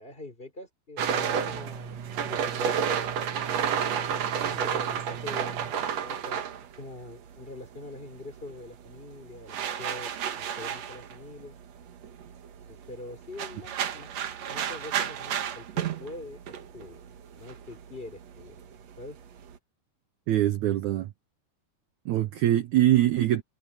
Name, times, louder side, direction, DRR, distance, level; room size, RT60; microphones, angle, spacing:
voice 1, 0.0-3.2 4.5-6.4 6.8-11.6 12.7-14.1 14.5-17.0 17.3-18.6 19.0-19.2, left 2 dB, 15° left, 3.5 m, -44 dB
sound 1, 1.0-7.7 7.9-19.6, right 8 dB, 55° right, 2.0 m, -32 dB
voice 2, 20.3-21.1 22.0-23.4, right 13 dB, 85° right, 1.6 m, -23 dB
omnidirectional pair, 4.5 m